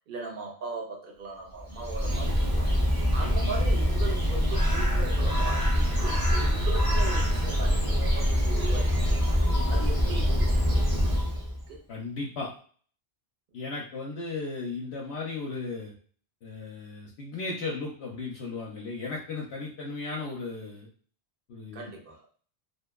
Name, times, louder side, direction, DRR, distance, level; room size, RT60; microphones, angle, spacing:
voice 1, 0.1-2.7 3.1-9.4 9.7-11.4 11.7-11.8 21.7-22.2, right 3 dB, 55° right, 0 dB, 0.8 m, -39 dB
Bird, 1.6-11.6, equal, 25° right, 0.5 m, -24 dB
voice 2, 11.9-12.5 13.5-15.9 16.4-20.9 21.5-21.9, left 3 dB, 75° left, -3 dB, 0.9 m, -35 dB
2.7 x 2.2 x 2.2 m, 0.43 s
omnidirectional pair, 1.1 m